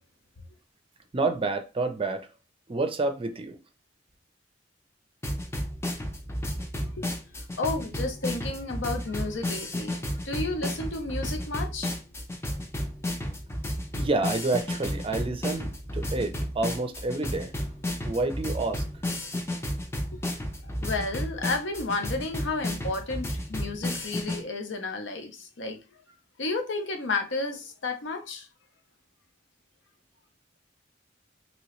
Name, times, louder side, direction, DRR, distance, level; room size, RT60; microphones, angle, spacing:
voice 1, 1.1-2.3 2.7-3.6 14.0-17.5 18.0-18.8, right 3 dB, 30° right, 0.5 m, -29 dB
sound 1, 5.2-24.4, left 1 dB, 15° left, 0.6 m, -32 dB
voice 2, 7.6-11.9 20.1-20.2 20.6-25.8 26.4-28.5, left 3 dB, 80° left, 0.7 m, -32 dB
3.0 x 2.9 x 3.0 m
head